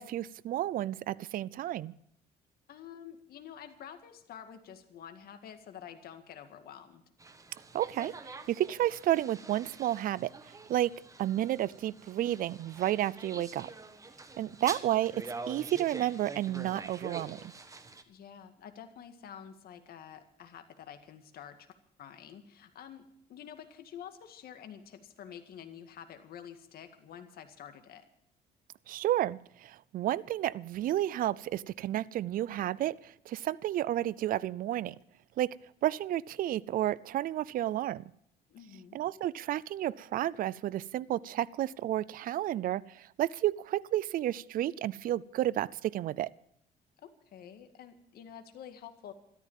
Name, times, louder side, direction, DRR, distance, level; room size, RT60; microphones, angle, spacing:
voice 1, 0.0-1.9 7.7-8.1 8.5-10.9 11.2-13.7 14.4-17.5 28.9-34.9 35.4-35.6 35.8-38.0 38.9-46.3, right 13 dB, 55° right, 20 dB, 0.5 m, -31 dB
voice 2, 2.7-7.0 18.1-28.0 38.5-39.0 47.0-49.1, left 9 dB, 65° left, 7 dB, 2.0 m, -49 dB
sound 1, 7.2-18.0, right 3 dB, 20° right, 1.3 m, -46 dB
13.5 x 13.0 x 7.3 m, 0.71 s
cardioid pair, 110°, 17 cm